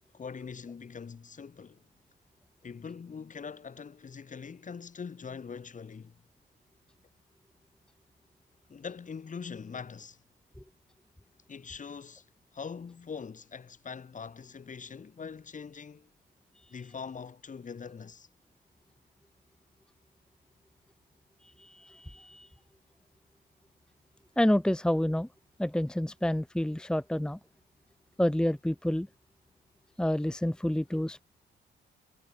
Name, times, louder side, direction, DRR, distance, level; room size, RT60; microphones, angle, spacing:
voice 1, 0.1-1.8 2.6-6.1 8.7-10.2 11.5-12.2 12.5-16.1 16.7-18.3, left 6 dB, 40° left, 4.2 m, -42 dB
voice 2, 21.6-22.5 24.4-25.3 25.6-27.4 28.2-29.1 30.0-31.2, left 1 dB, 5° left, 1.4 m, -28 dB
cardioid pair, 90°, 20 cm